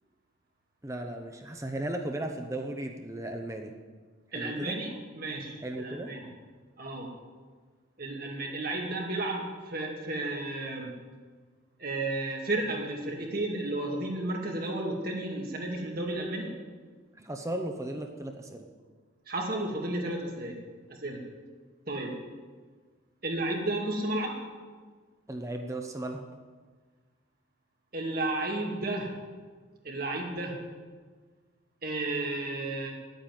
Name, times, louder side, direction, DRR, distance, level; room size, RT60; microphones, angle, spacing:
voice 1, 0.8-3.7 4.3-4.8 5.6-6.1 17.1-18.7 25.3-26.2, right 1 dB, 15° right, 4 dB, 0.8 m, -36 dB
voice 2, 4.3-6.3 6.8-7.1 8.0-10.9 11.8-16.5 19.3-20.6 21.0-21.2 21.9-22.1 23.2-24.4 27.9-29.1 29.8-30.6 31.8-32.9, right 2 dB, 45° right, 0 dB, 2.2 m, -32 dB
10.0 x 9.2 x 9.0 m, 1.5 s
head